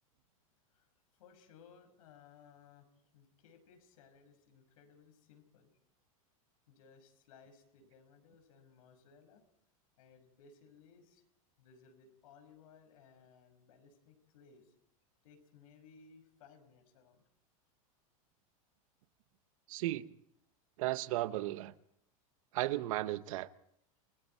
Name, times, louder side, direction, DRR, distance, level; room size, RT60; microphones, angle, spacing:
voice 1, 1.1-5.7 6.7-9.4 10.0-11.2 11.6-14.7 15.2-17.2, left 6 dB, 75° left, 5.7 m, -61 dB
voice 2, 19.7-20.1 20.8-21.7 22.5-23.5, right 16 dB, 70° right, 1.0 m, -35 dB
29.0 x 20.0 x 4.6 m
supercardioid pair, 140°, 18 cm